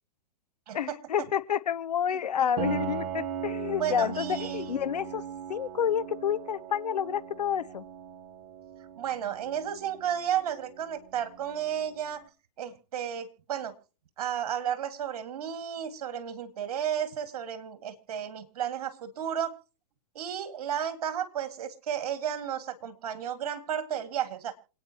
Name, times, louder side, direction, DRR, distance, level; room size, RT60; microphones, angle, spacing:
voice 1, 0.7-5.2 5.5-7.9, left 9 dB, 80° left, 0.9 m, -29 dB
Piano, 2.6-12.1, right 7 dB, 50° right, 2.0 m, -39 dB
voice 2, 3.8-4.7 9.0-12.2 12.6-13.7 14.2-19.5 20.1-24.5, right 9 dB, 65° right, 2.3 m, -33 dB
27.5 x 9.4 x 3.0 m
hypercardioid pair, 120°, 20 cm